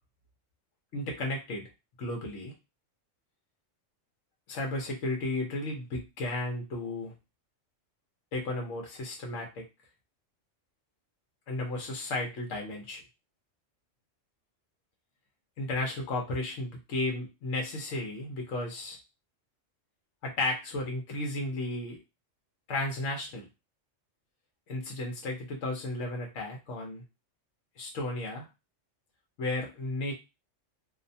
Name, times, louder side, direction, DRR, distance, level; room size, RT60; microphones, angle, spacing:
voice 1, 0.9-1.7 2.0-2.5 4.5-7.1 8.3-9.6 11.5-13.0 15.6-19.0 20.2-22.0 22.7-23.5 24.7-27.0 27.8-28.5 29.4-30.1, left 2 dB, 70° left, 1 dB, 1.0 m, -34 dB
2.6 x 2.1 x 2.6 m, 0.25 s
omnidirectional pair, 1.3 m